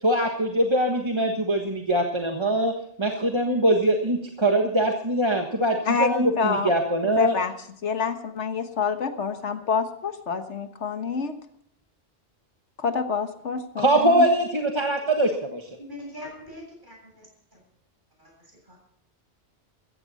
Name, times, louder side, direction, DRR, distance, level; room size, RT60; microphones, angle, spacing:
voice 1, 0.0-2.7 3.0-7.3 13.8-15.7, right 1 dB, 25° right, 2 dB, 1.4 m, -22 dB
voice 2, 5.8-6.7 7.2-7.5 7.8-11.3 12.8-14.3, left 5 dB, 85° left, 8 dB, 1.6 m, -27 dB
voice 3, 15.8-17.6, left 1 dB, 45° right, 0 dB, 7.7 m, -42 dB
15.5 x 14.5 x 4.2 m, 0.70 s
omnidirectional pair, 1.2 m